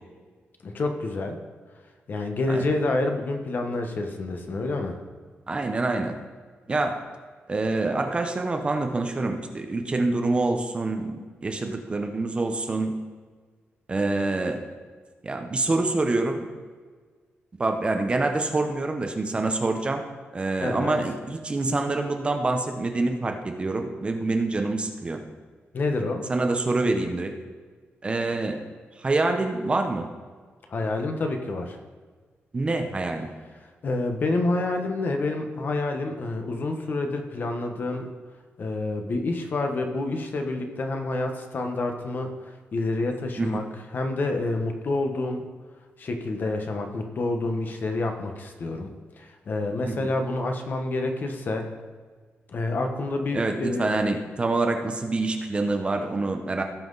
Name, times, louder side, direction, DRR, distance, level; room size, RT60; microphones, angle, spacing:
voice 1, 0.6-1.4 2.1-5.0 20.6-21.0 25.7-26.2 30.7-31.8 33.8-38.1 38.6-43.6 43.9-45.4 46.0-48.9 49.2-51.7 52.5-53.9, left 2 dB, 45° left, 5 dB, 1.1 m, -28 dB
voice 2, 5.5-6.2 6.7-7.0 7.5-12.9 13.9-14.6 15.2-16.4 17.6-20.0 20.3-25.2 26.3-27.3 28.0-28.6 29.0-30.1 32.5-33.3 43.4-43.6 49.9-50.1 53.3-56.6, right 2 dB, 25° right, 5 dB, 0.7 m, -26 dB
17.5 x 5.8 x 4.0 m, 1.5 s
wide cardioid pair, 175°, 4 cm